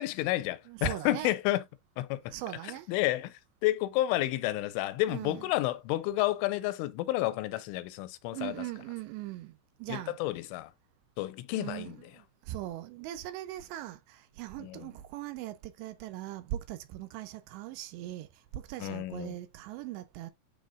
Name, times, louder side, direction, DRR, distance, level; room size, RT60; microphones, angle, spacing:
voice 1, 0.0-1.6 2.0-2.3 2.9-3.3 3.6-8.6 9.9-10.7 11.2-12.0 14.6-14.9 18.8-19.4, left 16 dB, 85° left, 3.1 m, -30 dB
voice 2, 0.7-1.4 2.3-2.9 5.1-5.5 8.3-10.2 11.5-20.3, right 14 dB, 85° right, 2.6 m, -40 dB
12.0 x 4.2 x 2.5 m
omnidirectional pair, 5.7 m